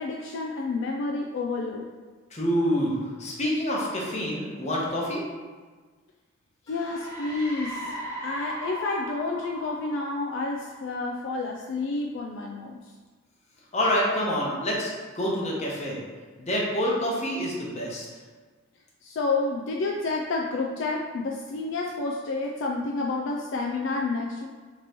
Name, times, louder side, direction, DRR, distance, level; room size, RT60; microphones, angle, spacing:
voice 1, 0.0-1.9 6.7-7.9 8.2-12.9 19.0-24.5, left 3 dB, 60° left, 0 dB, 0.3 m, -29 dB
voice 2, 2.3-5.2 13.7-14.9 15.1-16.0 16.4-18.1, equal, 35° left, -3 dB, 0.9 m, -27 dB
sound 1, 6.7-11.2, equal, 15° left, 1.2 m, -38 dB
5.1 x 3.0 x 3.0 m, 1.4 s
head